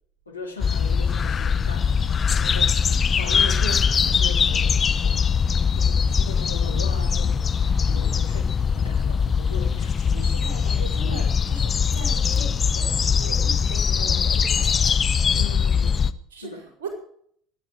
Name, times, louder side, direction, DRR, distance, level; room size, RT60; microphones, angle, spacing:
voice 1, 0.3-2.8 3.2-5.2 5.7-10.0 15.3-16.6, left 3 dB, 90° left, 2 dB, 2.7 m, -39 dB
sound 1, 0.6-16.1, left 6 dB, 30° left, 0.9 m, -21 dB
voice 2, 10.0-15.0 16.3-16.9, right 4 dB, 70° right, 1 dB, 5.0 m, -39 dB
23.0 x 9.1 x 5.0 m, 0.63 s
figure-of-eight pair, 65°, 0 cm